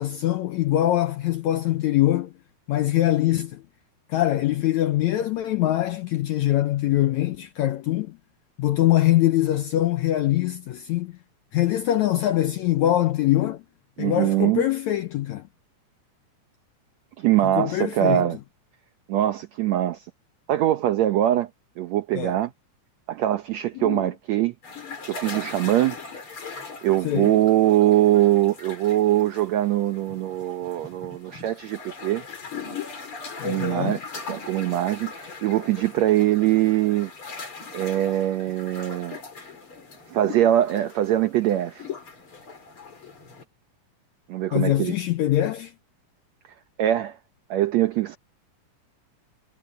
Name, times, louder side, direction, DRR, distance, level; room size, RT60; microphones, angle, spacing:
voice 1, 0.0-2.3 2.7-3.6 4.1-8.2 8.6-11.1 11.5-13.6 14.0-15.4 17.4-18.3 22.1-22.4 23.8-24.1 27.0-27.3 33.4-34.0 44.5-45.7, left 14 dB, 75° left, 1.7 m, -23 dB
voice 2, 14.0-14.6 17.2-18.4 19.1-20.1 20.5-21.5 21.8-22.5 23.1-24.5 25.1-26.0 26.8-32.2 33.4-34.0 34.3-37.1 37.7-39.2 40.1-41.9 44.3-44.9 46.8-47.2 47.5-48.2, right 13 dB, 80° right, 1.6 m, -22 dB
sound 1, 24.6-43.4, left 4 dB, 35° left, 4.6 m, -40 dB
omnidirectional pair, 4.1 m